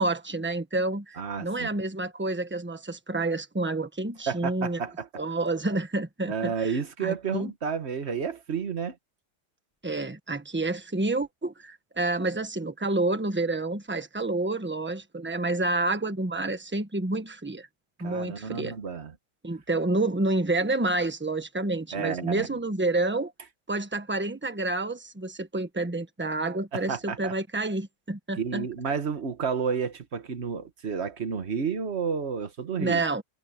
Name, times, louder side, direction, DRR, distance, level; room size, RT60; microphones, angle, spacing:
voice 1, 0.0-4.8 5.2-7.5 9.8-17.7 18.0-18.8 19.4-23.3 23.7-28.9 32.8-33.2, right 2 dB, 10° right, 1.1 m, -29 dB
voice 2, 1.2-1.7 4.3-5.2 6.3-8.9 18.0-19.1 21.9-22.5 26.7-27.3 28.4-33.0, right 6 dB, 45° right, 1.5 m, -31 dB
omnidirectional pair, 1.6 m